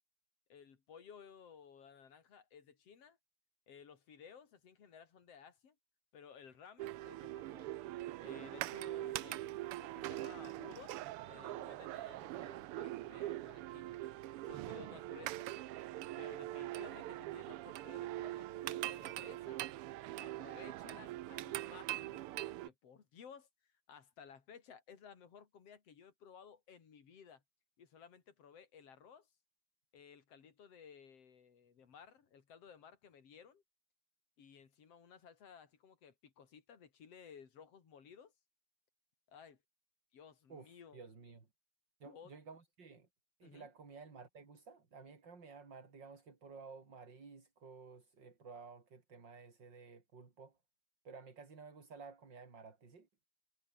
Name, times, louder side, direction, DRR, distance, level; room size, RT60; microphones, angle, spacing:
voice 1, 0.5-3.2 3.7-5.8 6.1-7.7 8.2-14.0 14.4-15.6 16.2-19.6 20.2-27.4 27.8-29.3 29.9-33.6 34.4-38.3 39.3-39.6 40.1-41.0 42.0-42.4 43.4-43.7, left 7 dB, 55° left, 3.8 m, -57 dB
sound 1, 6.8-22.7, right 15 dB, 85° right, 1.2 m, -43 dB
voice 2, 40.9-41.5 42.0-43.1 43.4-50.5 51.0-53.1, right 4 dB, 35° right, 3.8 m, -54 dB
omnidirectional pair, 3.4 m